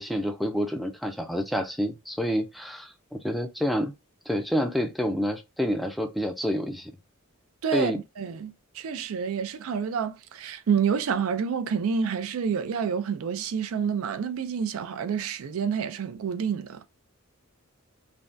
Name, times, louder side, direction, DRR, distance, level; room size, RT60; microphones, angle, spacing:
voice 1, 0.0-3.9 4.3-6.9 7.7-8.0, equal, ahead, 0.4 m, -28 dB
voice 2, 7.6-16.8, right 6 dB, 80° right, 0.4 m, -28 dB
3.4 x 2.2 x 2.5 m
head